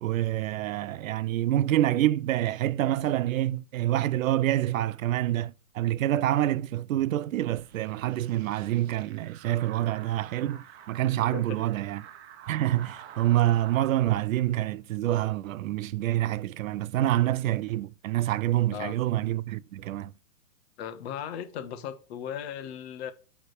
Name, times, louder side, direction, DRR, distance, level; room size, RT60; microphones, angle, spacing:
voice 1, 0.0-12.0 12.5-20.1, right 14 dB, 60° right, 0.6 m, -27 dB
sound 1, 7.5-14.0, right 9 dB, 45° right, 0.9 m, -49 dB
voice 2, 11.3-11.6 18.7-19.0 20.8-23.1, left 9 dB, 45° left, 1.2 m, -37 dB
8.3 x 3.5 x 6.6 m
hypercardioid pair, 140°, 45 cm